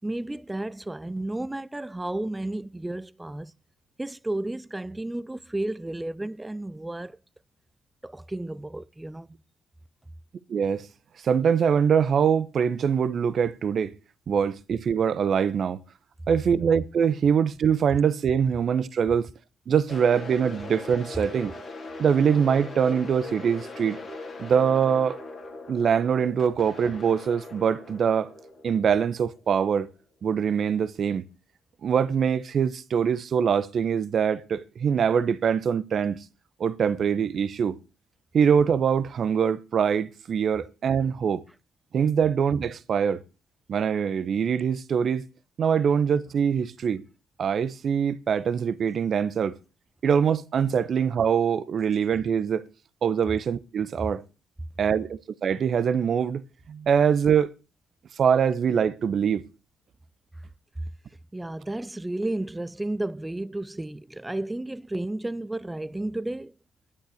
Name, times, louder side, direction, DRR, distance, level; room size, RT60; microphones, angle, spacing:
voice 1, 0.0-3.5 4.0-7.2 8.0-9.4 61.3-66.5, right 1 dB, 15° right, 0.7 m, -32 dB
voice 2, 10.5-10.9 11.2-13.9 14.3-15.8 16.3-19.3 19.7-21.5 22.0-24.0 24.4-25.2 25.7-28.3 28.6-29.9 30.2-31.3 31.8-36.2 36.6-37.8 38.3-41.4 41.9-43.2 43.7-45.2 45.6-47.0 47.4-49.5 50.0-52.6 53.0-54.2 54.8-56.4 56.7-57.5 58.2-59.4, right 7 dB, 55° right, 0.9 m, -23 dB
sound 1, 19.9-29.9, left 2 dB, 45° left, 3.9 m, -40 dB
11.0 x 10.0 x 6.5 m
hypercardioid pair, 45°, 0 cm